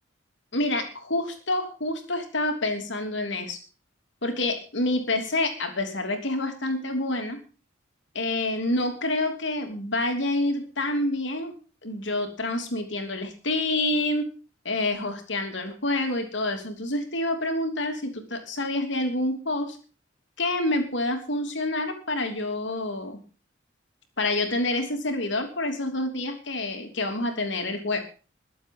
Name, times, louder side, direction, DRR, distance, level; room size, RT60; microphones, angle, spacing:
voice 1, 0.5-3.6 4.2-7.4 8.1-11.5 11.8-14.3 14.6-19.8 20.4-23.2 24.2-28.0, left 2 dB, 65° left, 5 dB, 3.1 m, -27 dB
21.5 x 7.9 x 5.4 m, 0.37 s
head